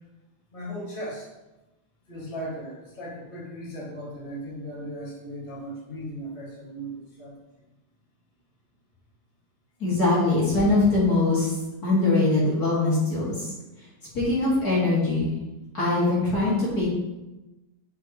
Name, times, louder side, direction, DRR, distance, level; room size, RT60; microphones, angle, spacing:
voice 1, 0.5-1.3 2.1-7.4, equal, 25° left, -7 dB, 2.1 m, -37 dB
voice 2, 9.8-11.5 11.8-13.5 14.1-15.4 15.7-16.9, left 2 dB, 50° left, -7 dB, 2.5 m, -22 dB
8.1 x 5.9 x 3.0 m, 1.0 s
omnidirectional pair, 2.2 m